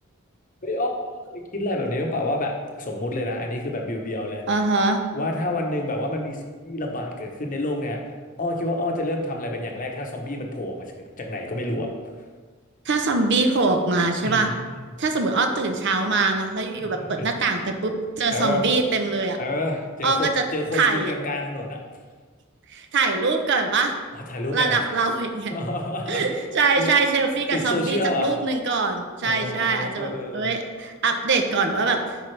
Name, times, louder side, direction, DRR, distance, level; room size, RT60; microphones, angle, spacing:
voice 1, 0.6-4.4 5.1-8.0 8.4-10.9 11.2-11.9 14.2-14.5 16.8-16.9 17.2-17.3 18.3-18.6 19.4-21.8 24.1-24.9 25.5-26.2 26.8-26.9 27.5-28.3 29.3-30.5, left 1 dB, 40° left, 2 dB, 0.9 m, -28 dB
voice 2, 4.5-5.0 12.9-14.5 15.0-19.4 20.0-20.4 20.7-21.1 22.7-23.9 24.5-25.5 26.1-32.0, right 3 dB, 55° right, 5 dB, 0.7 m, -23 dB
8.7 x 5.3 x 3.3 m, 1.5 s
head